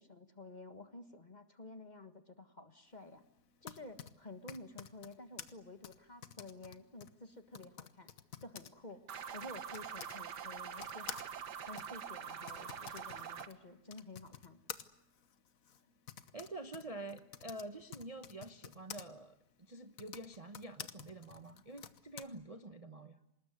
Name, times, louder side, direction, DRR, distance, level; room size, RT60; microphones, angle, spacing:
voice 1, 0.0-3.2 3.6-8.1 8.4-9.0 9.3-11.2 11.7-14.6, left 2 dB, 25° left, 9 dB, 1.6 m, -52 dB
Typing, 3.4-10.2 10.8-19.0 19.8-22.2, left 8 dB, 55° left, 1.5 m, -51 dB
sound 1, 9.1-13.5, right 7 dB, 80° right, 1.9 m, -45 dB
voice 2, 16.3-23.2, right 2 dB, 25° right, 7 dB, 1.0 m, -47 dB
26.0 x 20.0 x 9.5 m, 0.88 s
omnidirectional pair, 1.8 m